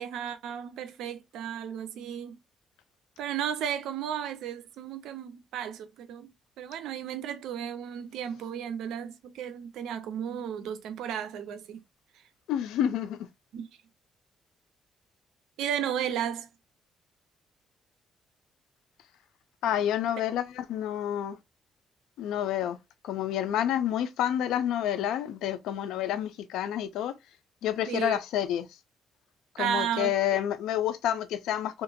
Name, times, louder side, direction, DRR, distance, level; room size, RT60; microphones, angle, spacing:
voice 1, 0.0-2.4 3.2-6.3 6.6-11.8 13.5-13.7 15.6-16.5 27.9-28.2 29.6-30.4, right 9 dB, 85° right, 0.5 m, -34 dB
voice 2, 12.5-13.2 19.6-21.4 22.2-22.8 23.0-27.2 27.6-28.7 29.6-31.8, left 10 dB, 85° left, 0.3 m, -29 dB
2.8 x 2.5 x 2.6 m
cardioid pair, 90°, 0 cm